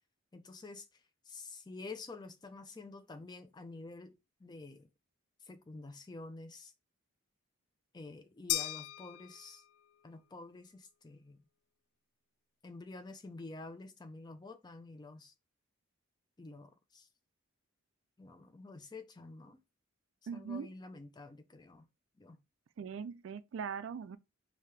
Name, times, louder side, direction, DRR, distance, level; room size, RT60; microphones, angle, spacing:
voice 1, 0.3-4.9 5.4-6.7 7.9-9.6 10.0-11.4 12.6-15.3 16.4-17.1 18.2-19.6 20.3-21.9 22.2-22.4, left 3 dB, 20° left, 0.4 m, -49 dB
sound 1, 8.5-9.9, left 15 dB, 90° left, 0.3 m, -37 dB
voice 2, 20.3-20.7 22.8-24.2, right 6 dB, 60° right, 0.3 m, -40 dB
5.0 x 2.7 x 3.2 m
head